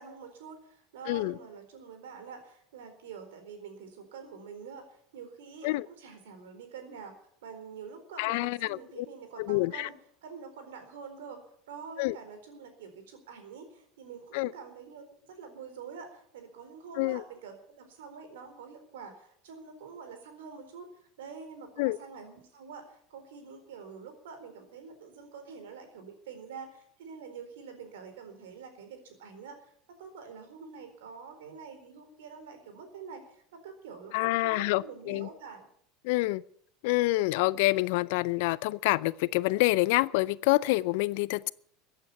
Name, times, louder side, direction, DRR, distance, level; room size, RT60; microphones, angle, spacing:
voice 1, 0.0-7.1 7.4-20.9 21.2-35.7, right 5 dB, 75° right, 7 dB, 4.1 m, -46 dB
voice 2, 8.2-9.1 9.4-9.9 12.0-12.2 14.3-14.5 17.0-17.2 21.8-22.0 34.1-35.3 36.0-36.4 36.8-41.5, left 20 dB, 65° left, 21 dB, 0.5 m, -27 dB
15.0 x 9.1 x 9.6 m, 0.65 s
hypercardioid pair, 85°, 0 cm